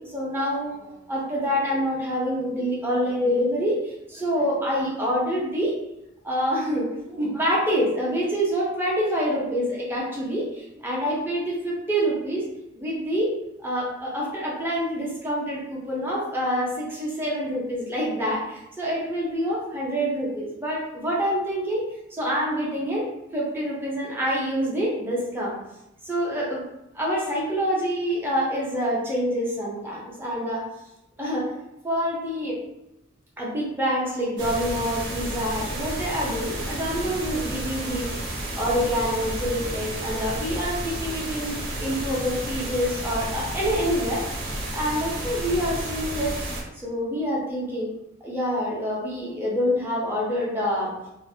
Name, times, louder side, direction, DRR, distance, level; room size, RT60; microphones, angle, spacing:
voice 1, 0.0-5.7 6.2-12.4 12.8-13.3 13.6-21.8 22.1-23.1 23.3-25.5 26.0-26.6 26.9-30.6 31.2-31.4 31.8-32.6 33.4-38.1 38.5-44.2 44.7-46.3 46.7-47.9 48.2-50.9, equal, 10° right, -5 dB, 0.5 m, -26 dB
sound 1, 34.4-46.6, right 1 dB, 80° right, 0.8 m, -31 dB
2.4 x 2.0 x 2.6 m, 0.88 s
head